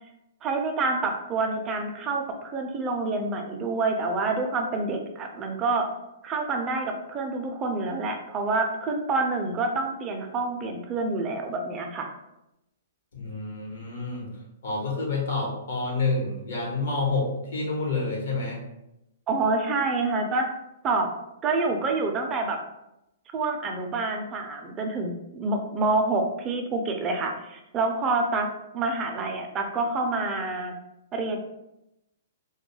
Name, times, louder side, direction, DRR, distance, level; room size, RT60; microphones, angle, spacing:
voice 1, 0.4-5.9 6.2-12.1 19.3-20.5 20.8-21.1 21.4-22.6 23.3-28.5 28.7-30.7 31.1-31.4, right 3 dB, 20° right, 3 dB, 0.3 m, -27 dB
voice 2, 13.1-14.3 14.6-18.6, left 3 dB, 80° left, -2 dB, 1.0 m, -28 dB
2.2 x 2.2 x 3.1 m, 0.88 s
hypercardioid pair, 145°, 0 cm